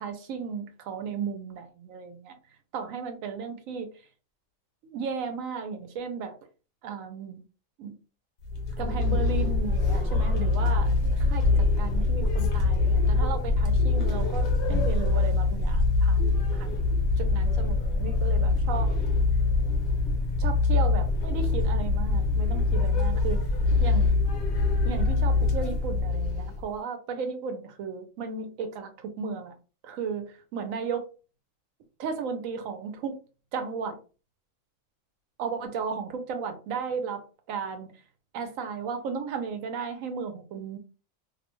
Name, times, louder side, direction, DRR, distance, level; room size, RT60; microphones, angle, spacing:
voice 1, 0.0-2.4 2.7-3.9 4.9-6.3 6.8-7.4 7.8-7.9 8.8-16.8 17.2-19.0 20.4-23.4 23.8-24.1 24.8-29.5 29.8-31.1 32.0-33.2 33.5-34.0 35.4-37.9 38.3-40.8, right 6 dB, 75° right, 1.0 m, -35 dB
sound 1, 8.4-26.7, left 3 dB, 65° left, 0.9 m, -24 dB
2.6 x 2.1 x 3.0 m
omnidirectional pair, 1.4 m